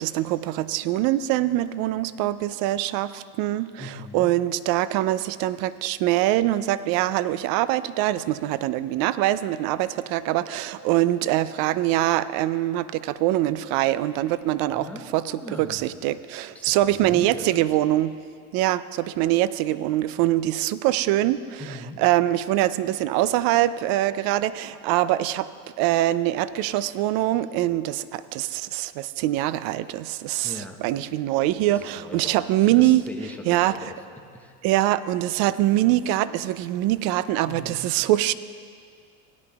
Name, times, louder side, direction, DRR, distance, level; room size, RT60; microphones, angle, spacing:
voice 1, 0.0-18.1 18.5-25.5 25.8-33.0 33.5-33.8 34.6-38.3, right 14 dB, 50° right, 16 dB, 0.4 m, -23 dB
voice 2, 3.8-4.3 14.7-16.0 16.5-17.7 21.6-22.0 30.4-30.8 31.7-34.5 37.5-37.9, left 1 dB, 5° left, 2 dB, 0.8 m, -40 dB
16.5 x 9.8 x 2.3 m, 2.1 s
hypercardioid pair, 95°, 48 cm